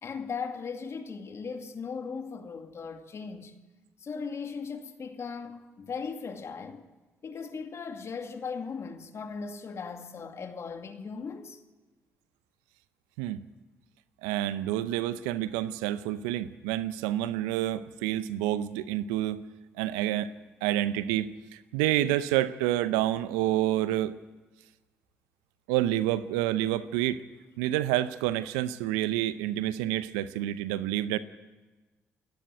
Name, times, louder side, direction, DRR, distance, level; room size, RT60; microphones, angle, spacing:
voice 1, 0.0-3.5 4.0-6.8 7.2-11.6, left 5 dB, 50° left, 2.3 m, -38 dB
voice 2, 14.2-19.5 19.8-20.3 20.6-21.3 21.7-24.2 25.7-27.2 27.6-31.2, right 13 dB, 80° right, 0.7 m, -28 dB
28.5 x 11.5 x 9.1 m
hypercardioid pair, 45°, 6 cm